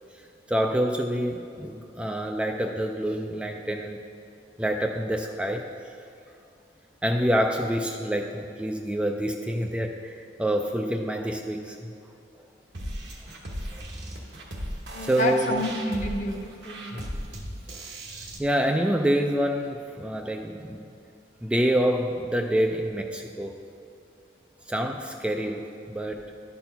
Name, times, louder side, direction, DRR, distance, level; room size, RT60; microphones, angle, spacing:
voice 1, 0.1-4.0 4.6-5.6 7.0-11.9 13.7-13.8 15.0-15.5 16.9-17.1 17.7-17.8 18.4-20.8 21.4-23.6 24.7-26.3, equal, 5° right, 3 dB, 0.3 m, -27 dB
sound 1, 12.7-18.4, equal, 70° right, 1.1 m, -37 dB
voice 2, 14.9-17.1, left 1 dB, 45° left, 2 dB, 0.9 m, -29 dB
11.0 x 4.4 x 5.6 m, 2.6 s
head